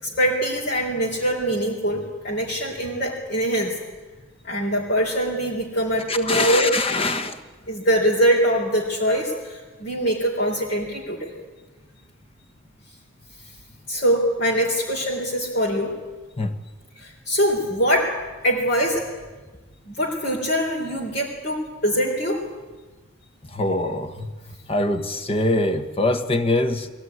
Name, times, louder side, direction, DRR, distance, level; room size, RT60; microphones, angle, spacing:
voice 1, 0.0-3.8 4.4-6.7 7.7-11.3 13.9-15.9 17.0-18.1 18.4-19.1 19.9-22.4, equal, 55° left, -3 dB, 3.9 m, -23 dB
voice 2, 6.1-7.4 16.4-16.6 23.5-26.9, left 2 dB, 30° left, 8 dB, 1.4 m, -24 dB
22.5 x 17.0 x 9.6 m, 1.3 s
head